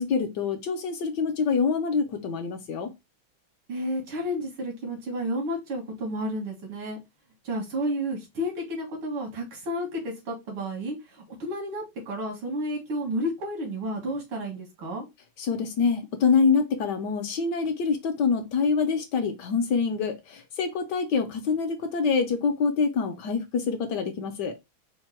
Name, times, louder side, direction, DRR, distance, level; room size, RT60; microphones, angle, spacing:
voice 1, 0.0-2.9 15.4-24.6, left 5 dB, 70° left, 1.2 m, -25 dB
voice 2, 3.7-7.0 7.4-15.0, equal, 85° right, 2.3 m, -31 dB
4.6 x 2.2 x 4.2 m
omnidirectional pair, 2.3 m